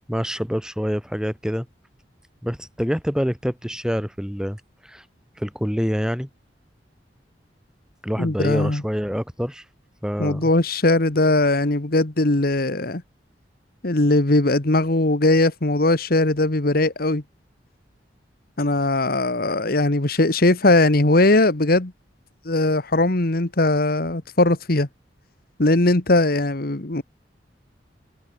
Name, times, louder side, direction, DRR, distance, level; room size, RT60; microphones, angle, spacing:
voice 1, 0.1-1.7 2.4-5.0 5.4-6.3 8.0-9.6 10.0-10.5, equal, 5° right, 7.3 m, -26 dB
voice 2, 8.2-8.8 10.2-13.0 13.8-17.2 18.6-21.9 22.5-24.9 25.6-27.0, left 2 dB, 60° left, 1.7 m, -19 dB
head